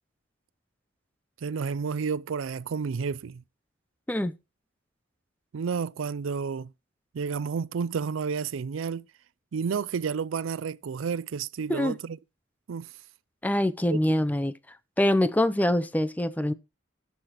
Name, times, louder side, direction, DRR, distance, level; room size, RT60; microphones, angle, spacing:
voice 1, 1.4-3.4 5.5-6.7 7.1-9.0 9.5-12.2 12.7-12.9 13.9-14.1, right 6 dB, 85° right, 0.4 m, -31 dB
voice 2, 13.4-14.5 15.0-16.5, left 1 dB, 10° left, 0.5 m, -24 dB
17.0 x 6.9 x 3.0 m
head